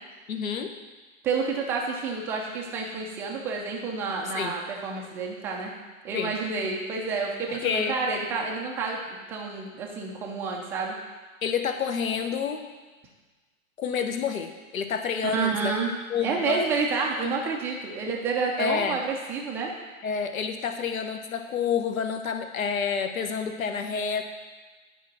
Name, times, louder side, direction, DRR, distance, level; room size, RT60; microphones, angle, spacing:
voice 1, 0.3-0.7 4.3-4.5 6.1-6.3 7.5-8.0 11.4-12.7 13.8-15.7 16.1-16.6 17.2-17.5 18.6-19.0 20.0-24.3, left 6 dB, 75° left, 7 dB, 1.0 m, -29 dB
voice 2, 1.2-5.7 6.0-10.9 15.2-15.9 16.2-19.7, right 4 dB, 5° right, -1 dB, 0.3 m, -29 dB
10.0 x 4.9 x 6.0 m, 1.3 s
hypercardioid pair, 120°, 41 cm